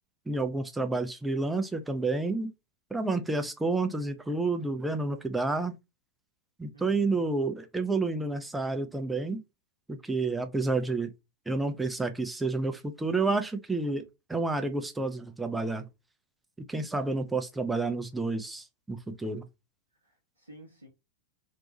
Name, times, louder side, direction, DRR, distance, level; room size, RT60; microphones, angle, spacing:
voice 1, 0.3-2.5 2.9-5.7 6.6-9.4 9.9-11.1 11.5-14.0 14.3-15.9 16.7-19.4, right 3 dB, 5° right, 0.4 m, -30 dB
voice 2, 6.7-7.2 20.0-20.9, left 1 dB, 85° right, 0.6 m, -51 dB
2.5 x 2.2 x 2.8 m
figure-of-eight pair, 90°, 0 cm